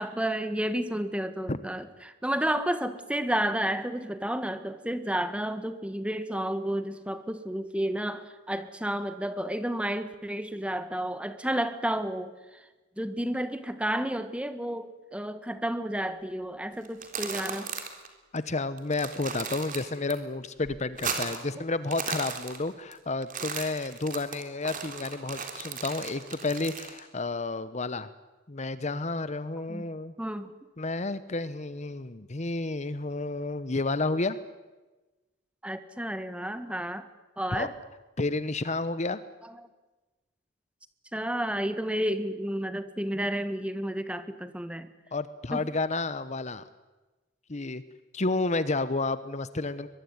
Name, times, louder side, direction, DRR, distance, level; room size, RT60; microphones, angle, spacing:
voice 1, 0.0-12.6 13.0-17.7 29.7-29.8 30.2-30.5 35.6-37.1 37.4-37.7 41.1-44.9 45.5-45.7, right 1 dB, 5° right, 11 dB, 1.4 m, -31 dB
Crisps Pickup, 16.9-18.1 18.4-18.5 18.8-20.1 20.5-21.5 21.8-22.9 23.2-27.0, right 6 dB, 45° right, 3.6 m, -36 dB
voice 2, 18.3-28.1 28.5-30.1 30.8-34.4 37.5-37.7 38.2-39.2 45.1-46.6 47.5-47.8 48.1-49.9, left 3 dB, 35° left, 14 dB, 0.9 m, -31 dB
23.5 x 22.0 x 9.6 m, 1.2 s
head